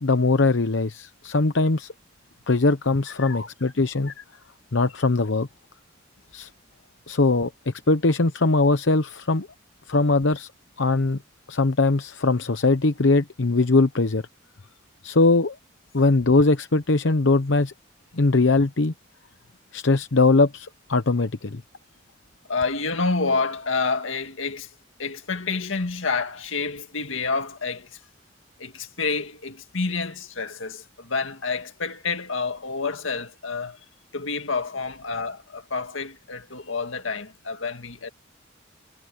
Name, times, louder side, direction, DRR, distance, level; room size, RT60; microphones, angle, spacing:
voice 1, 0.0-1.9 2.5-4.1 4.7-5.5 6.3-6.5 7.1-9.5 9.9-10.5 10.8-11.2 11.5-14.2 15.0-15.6 15.9-17.7 18.1-18.9 19.7-21.6, left 3 dB, 75° left, 0.9 m, -21 dB
voice 2, 22.5-24.7 25.0-28.0 28.6-33.8 34.1-38.1, left 4 dB, 90° left, 2.0 m, -28 dB
head